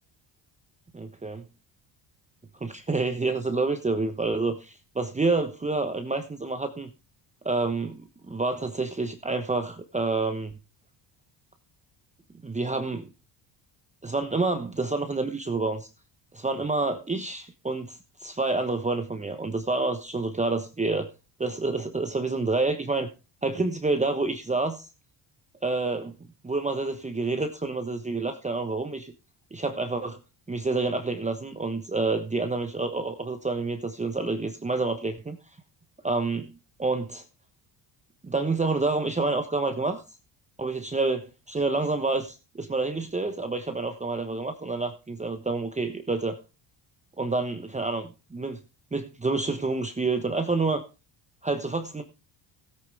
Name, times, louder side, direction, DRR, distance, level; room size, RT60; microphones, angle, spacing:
voice 1, 0.9-1.4 2.6-6.9 7.4-10.5 12.4-13.1 14.0-15.9 16.3-21.1 21.4-23.1 23.4-24.9 25.6-26.1 26.4-29.1 29.5-30.2 30.5-35.4 36.0-36.5 36.8-37.2 38.2-40.0 40.6-41.2 41.5-46.4 47.2-48.6 48.9-50.8 51.4-52.0, right 3 dB, 15° right, 7 dB, 1.1 m, -28 dB
16.0 x 8.9 x 3.4 m, 0.30 s
cardioid pair, 90°, 47 cm